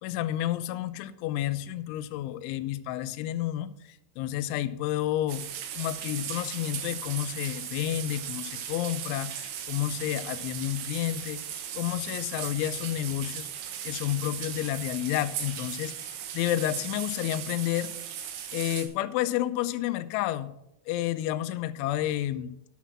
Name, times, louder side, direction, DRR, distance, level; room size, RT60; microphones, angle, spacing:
voice 1, 0.0-5.4 5.8-11.4 11.7-13.5 13.8-15.9 16.3-17.9 18.5-20.5 20.9-22.5, left 13 dB, 85° left, 11 dB, 3.0 m, -30 dB
sound 1, 5.3-18.9, right 9 dB, 75° right, 3.2 m, -37 dB
10.0 x 7.3 x 5.8 m, 0.81 s
omnidirectional pair, 5.4 m